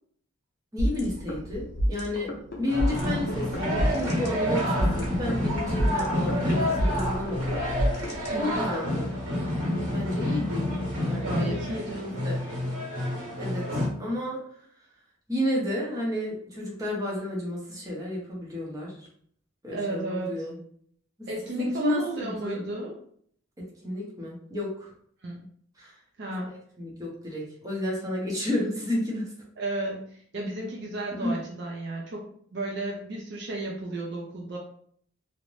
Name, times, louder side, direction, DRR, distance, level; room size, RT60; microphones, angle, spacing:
voice 1, 0.7-2.3 2.6-7.6 8.4-9.1 9.9-10.7 11.1-12.4 13.0-14.4 15.3-19.0 19.6-20.6 21.5-22.6 23.6-24.9 25.8-25.9 26.2-29.3 31.2-31.4, left 1 dB, 15° right, -4 dB, 0.7 m, -31 dB
sound 1, 0.8-8.8, equal, 50° left, 0.5 m, -30 dB
sound 2, 2.7-13.9, left 1 dB, 85° right, 1.3 m, -29 dB
voice 2, 8.3-8.6 11.2-12.2 19.7-20.3 21.3-22.9 25.2-25.4 26.2-26.5 29.6-34.6, right 2 dB, 50° right, -1 dB, 0.4 m, -33 dB
2.5 x 2.1 x 3.1 m, 0.62 s
head